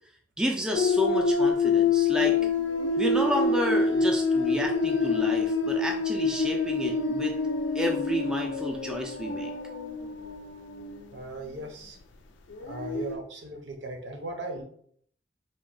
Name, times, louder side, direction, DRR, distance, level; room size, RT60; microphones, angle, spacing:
voice 1, 0.4-2.4 3.0-7.4 7.7-9.5, equal, 5° right, 1 dB, 0.4 m, -30 dB
sound 1, 0.7-11.1 12.5-13.2, left 4 dB, 80° left, 0.4 m, -26 dB
voice 2, 11.1-12.0 12.6-14.6, right 2 dB, 75° right, 3 dB, 0.7 m, -38 dB
3.5 x 2.2 x 3.8 m, 0.62 s
head